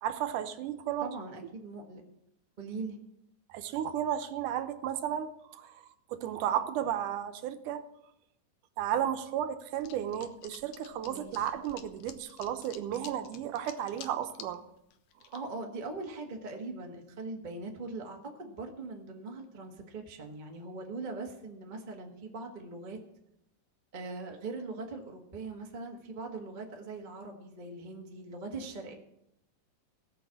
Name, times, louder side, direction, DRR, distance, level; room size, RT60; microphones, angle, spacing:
voice 1, 0.0-1.1 3.5-5.8 6.1-7.8 8.8-14.6, right 10 dB, 80° right, 9 dB, 2.3 m, -33 dB
voice 2, 1.0-2.0 2.6-3.0 11.0-11.5 15.3-23.0 23.9-28.9, right 3 dB, 35° right, 1 dB, 0.7 m, -41 dB
sound 1, 9.8-14.6 14.9-15.4, left 10 dB, 85° left, 2.4 m, -49 dB
17.5 x 6.2 x 7.1 m, 0.82 s
omnidirectional pair, 3.6 m